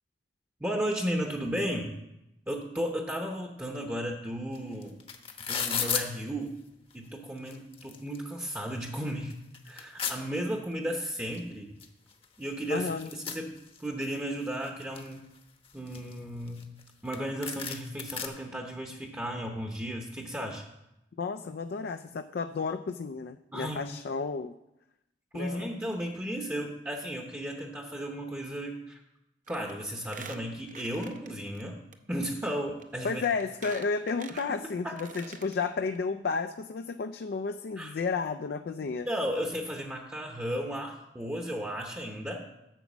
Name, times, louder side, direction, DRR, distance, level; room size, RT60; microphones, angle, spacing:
voice 1, 0.6-2.0 2.5-5.0 5.5-6.6 6.9-9.3 9.6-11.7 12.4-15.2 15.7-16.6 17.0-20.6 23.5-23.8 25.3-29.0 29.5-31.7 32.1-33.2 34.8-34.9 37.8-37.9 39.1-42.4, equal, 15° right, 2 dB, 0.8 m, -34 dB
sound 1, 4.5-4.6 4.8-6.0 6.9-7.0 7.4-8.2 8.6-8.7 9.1-10.2 11.3-11.4 11.8-11.9 12.1-14.1 14.5-15.1 15.6-16.9 17.1-17.2 17.4-18.3, left 7 dB, 35° left, 0.9 m, -34 dB
voice 2, 12.7-13.1 21.2-24.6 25.3-25.7 33.0-39.1, left 4 dB, 60° left, 7 dB, 0.4 m, -32 dB
Squeak, 29.5-29.7 30.0-31.6 31.9-32.0 32.8-32.9 33.2-35.5 36.0-36.1 36.3-36.4, right 5 dB, 45° right, 0.7 m, -46 dB
9.1 x 5.9 x 7.2 m, 0.89 s
head